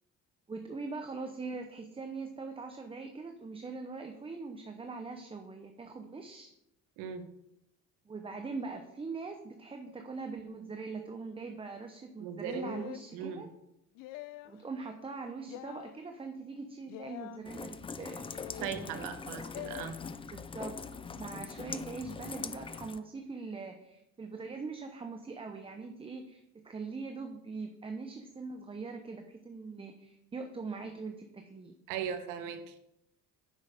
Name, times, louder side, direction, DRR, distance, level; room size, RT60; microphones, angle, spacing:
voice 1, 0.5-6.5 8.1-13.5 14.4-18.2 18.5-19.0 20.3-31.7, right 4 dB, 15° right, 5 dB, 0.8 m, -42 dB
voice 2, 12.2-12.8 13.1-13.4 18.6-19.9 31.9-32.7, right 7 dB, 85° right, 7 dB, 1.4 m, -38 dB
sound 1, 12.5-13.1 14.0-14.6 15.5-15.9 16.9-17.4 18.3-18.8 19.5-19.9, left 15 dB, 75° left, 0.6 m, -45 dB
Rain, 17.5-23.0, left 5 dB, 15° left, 0.4 m, -42 dB
9.7 x 6.4 x 5.1 m, 0.83 s
cardioid pair, 115°, 33 cm